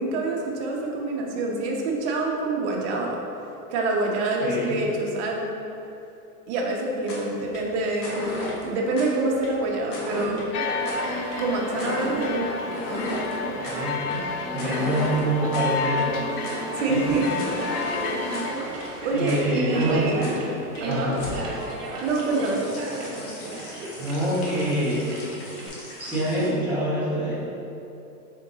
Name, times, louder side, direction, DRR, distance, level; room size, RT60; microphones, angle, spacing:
voice 1, 0.0-3.2 3.7-5.5 6.5-8.2 8.6-10.5 11.4-12.6 16.7-17.3 18.2-18.3 19.0-20.3 20.8-21.1 22.0-22.6, right 2 dB, 45° right, -1 dB, 0.8 m, -26 dB
voice 2, 4.4-4.9 13.6-16.1 16.9-17.2 19.1-20.4 20.9-21.3 24.0-25.1 26.0-27.4, right 1 dB, 5° right, -11 dB, 0.3 m, -26 dB
sound 1, 6.9-26.5, left 1 dB, 30° left, 0.8 m, -37 dB
Conversation, 10.4-25.7, right 2 dB, 80° right, 1.0 m, -35 dB
sound 2, 10.5-18.5, left 5 dB, 75° left, 0.6 m, -31 dB
3.7 x 3.7 x 3.9 m, 2.8 s
supercardioid pair, 145°, 47 cm